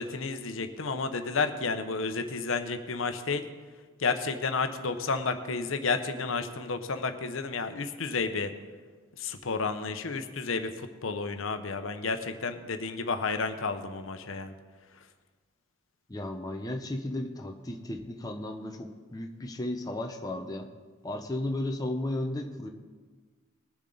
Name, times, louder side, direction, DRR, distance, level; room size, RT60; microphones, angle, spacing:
voice 1, 0.0-3.5 4.0-8.5 9.2-14.5, left 4 dB, 70° left, 8 dB, 0.8 m, -31 dB
voice 2, 16.1-20.7 21.0-22.7, left 1 dB, 15° left, 2 dB, 0.7 m, -34 dB
20.0 x 7.2 x 3.9 m, 1.5 s
head